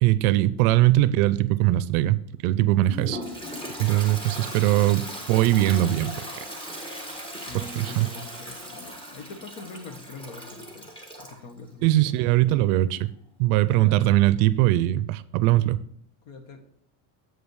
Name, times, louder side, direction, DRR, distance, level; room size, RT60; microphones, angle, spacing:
voice 1, 0.0-2.2 2.4-3.2 3.8-6.4 7.5-8.1 11.8-13.1 13.4-15.8, right 15 dB, 65° right, 0.5 m, -21 dB
Toilet flush, 2.8-11.4, equal, 10° left, 1.3 m, -38 dB
voice 2, 3.9-4.8 7.5-10.9 11.2-12.3 13.7-14.1 16.2-16.6, left 3 dB, 55° left, 1.5 m, -43 dB
7.8 x 5.2 x 4.8 m
supercardioid pair, 145°, 48 cm